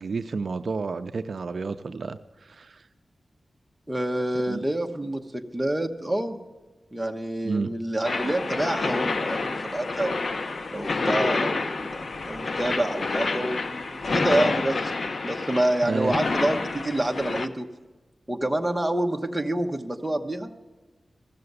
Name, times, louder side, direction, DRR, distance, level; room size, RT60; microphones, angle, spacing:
voice 1, 0.0-2.9 4.5-4.6 7.4-7.7 15.8-16.1, right 4 dB, 65° right, 10 dB, 0.5 m, -30 dB
voice 2, 3.9-6.4 6.9-10.2 10.7-14.9 15.2-17.7 18.3-20.5, right 1 dB, 10° right, 4 dB, 1.0 m, -27 dB
sound 1, 8.0-17.5, left 3 dB, 55° left, 0.7 m, -28 dB
15.0 x 6.8 x 8.0 m, 1.2 s
wide cardioid pair, 120°, 0 cm